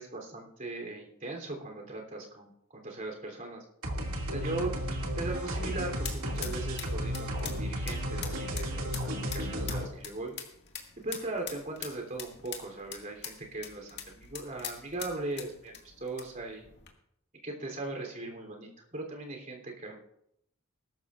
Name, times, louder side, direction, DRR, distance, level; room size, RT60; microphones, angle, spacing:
voice 1, 0.0-3.6 4.3-4.7 5.1-10.3 11.0-16.7 17.4-20.0, right 2 dB, 40° right, 1 dB, 3.1 m, -39 dB
sound 1, 3.8-9.8, equal, 85° right, 2.3 m, -33 dB
sound 2, 5.3-16.9, left 8 dB, 55° left, 1.9 m, -45 dB
20.5 x 12.0 x 2.5 m, 0.78 s
head